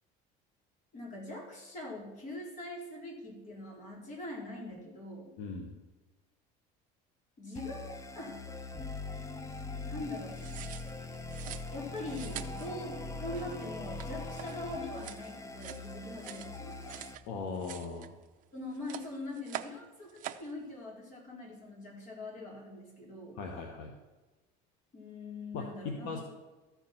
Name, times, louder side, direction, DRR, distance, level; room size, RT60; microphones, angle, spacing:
voice 1, 0.9-5.3 7.4-8.5 9.9-10.4 11.7-17.0 18.5-23.4 24.9-26.2, left 2 dB, 45° left, -3 dB, 4.0 m, -42 dB
voice 2, 5.4-5.7 17.3-18.1 23.4-23.9 25.5-25.6 26.0-26.2, left 4 dB, 70° left, 2 dB, 1.3 m, -39 dB
sound 1, 7.6-17.2, left 3 dB, 15° left, 0.5 m, -42 dB
sound 2, 10.3-17.2 17.5-18.4 18.7-19.8 20.1-20.5, right 13 dB, 45° right, 0.6 m, -45 dB
14.0 x 4.9 x 5.7 m, 1.2 s
cardioid pair, 140°, 18 cm